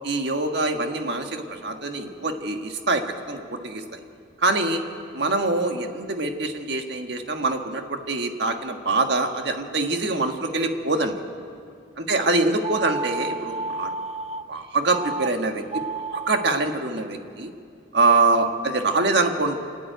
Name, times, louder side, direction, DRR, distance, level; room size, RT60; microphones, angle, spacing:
voice 1, 0.0-3.0 3.3-3.8 4.4-4.8 5.1-11.2 12.0-13.9 14.5-15.6 16.1-17.5 17.9-19.6, right 3 dB, 60° right, 5 dB, 1.6 m, -24 dB
sound 1, 12.6-14.4 14.9-15.3 15.6-16.5, right 4 dB, 35° right, 0.5 m, -31 dB
29.0 x 9.8 x 9.2 m, 2.4 s
head